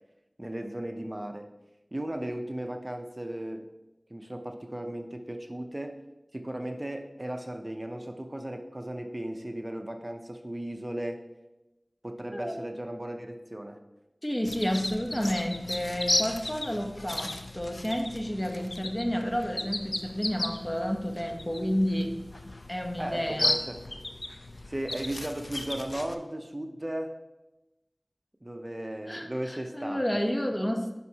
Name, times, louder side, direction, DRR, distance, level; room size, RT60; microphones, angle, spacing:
voice 1, 0.4-1.5 1.9-3.7 4.1-6.0 6.3-11.2 12.0-13.8 23.0-23.8 24.7-27.1 28.4-30.0, right 1 dB, 30° right, 5 dB, 0.6 m, -36 dB
voice 2, 14.2-22.1 22.7-23.6 29.1-31.0, equal, 25° left, 3 dB, 0.9 m, -30 dB
sound 1, 14.5-26.2, left 2 dB, 65° left, 0.5 m, -35 dB
9.2 x 5.5 x 2.8 m, 1.0 s
wide cardioid pair, 45°, 0 cm